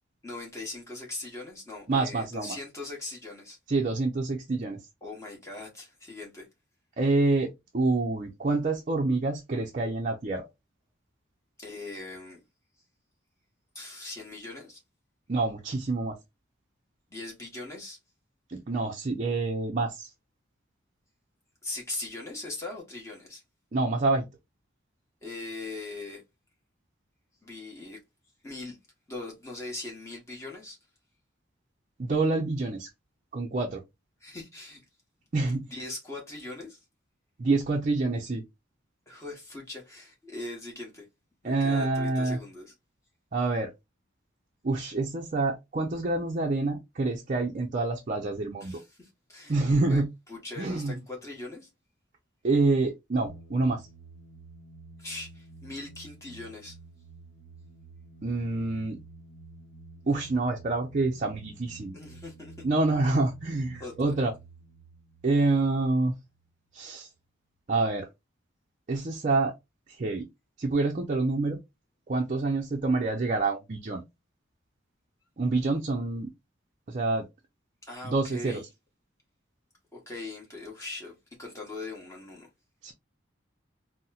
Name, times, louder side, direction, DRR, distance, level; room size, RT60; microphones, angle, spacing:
voice 1, 0.2-3.6 5.0-6.5 11.6-12.4 13.7-14.8 17.1-18.0 21.6-23.4 25.2-26.2 27.4-28.0 28.4-28.8 29.1-30.8 34.2-34.8 35.7-36.8 39.1-41.1 41.4-42.7 48.6-50.0 50.3-51.7 55.0-56.8 61.9-62.5 63.7-64.1 77.8-78.6 79.9-82.5, left 2 dB, 15° left, 1.1 m, -40 dB
voice 2, 1.9-2.6 3.7-4.8 7.0-10.5 15.3-16.2 18.5-20.1 23.7-24.3 32.0-32.9 33.3-33.8 35.3-35.7 37.4-38.4 41.4-42.4 43.3-43.7 44.6-48.8 49.5-50.1 50.6-51.0 52.4-53.9 58.2-59.0 60.1-62.0 62.6-64.3 65.2-66.1 66.7-67.1 67.7-68.1 68.9-69.5 69.9-70.3 70.6-71.6 72.1-74.0 75.4-76.3 76.9-77.3 78.0-78.6 82.8-82.9, right 3 dB, 40° right, 0.5 m, -27 dB
sound 1, 53.3-66.5, right 3 dB, 75° left, 0.9 m, -51 dB
4.1 x 2.1 x 2.3 m
head